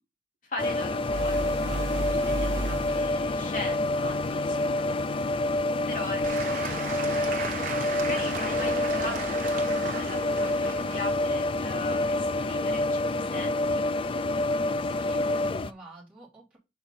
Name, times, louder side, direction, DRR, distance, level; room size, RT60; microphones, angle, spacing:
voice 1, 0.4-5.0 5.9-13.8, left 2 dB, 45° left, 0 dB, 2.3 m, -40 dB
sound 1, 0.6-15.7, left 2 dB, 30° left, 0.3 m, -28 dB
sound 2, 1.0-3.4, right 2 dB, 80° right, 0.7 m, -33 dB
Applause / Crowd, 6.2-12.5, right 5 dB, 50° right, 1.1 m, -37 dB
voice 2, 14.4-16.6, right 2 dB, 5° right, -6 dB, 3.2 m, -51 dB
5.6 x 5.0 x 4.2 m, 0.26 s
head